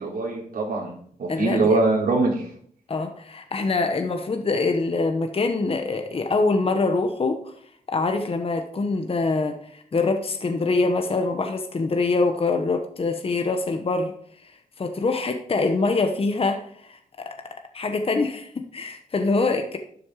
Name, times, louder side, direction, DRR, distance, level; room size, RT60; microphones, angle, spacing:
voice 1, 0.0-2.5, right 3 dB, 70° right, -3 dB, 3.8 m, -23 dB
voice 2, 1.3-1.8 2.9-7.5 7.9-14.1 14.8-19.8, left 3 dB, 40° left, 5 dB, 1.0 m, -24 dB
12.0 x 7.0 x 4.9 m, 0.63 s
wide cardioid pair, 105°, 15 cm